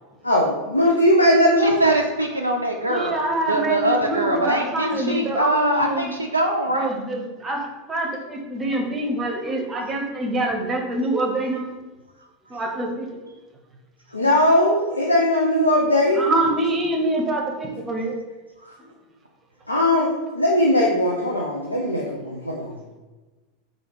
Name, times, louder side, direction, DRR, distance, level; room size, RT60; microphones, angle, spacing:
voice 1, 0.2-1.8 14.1-16.3 19.7-20.1 20.3-22.7, left 1 dB, 85° left, -2 dB, 0.5 m, -19 dB
voice 2, 1.6-6.9, right 1 dB, 85° right, 1 dB, 0.3 m, -23 dB
voice 3, 2.9-6.1 6.7-11.8 12.5-13.2 16.1-18.1, right 1 dB, 20° right, 2 dB, 0.9 m, -25 dB
4.2 x 2.7 x 4.6 m, 1.2 s
figure-of-eight pair, 85°, 0 cm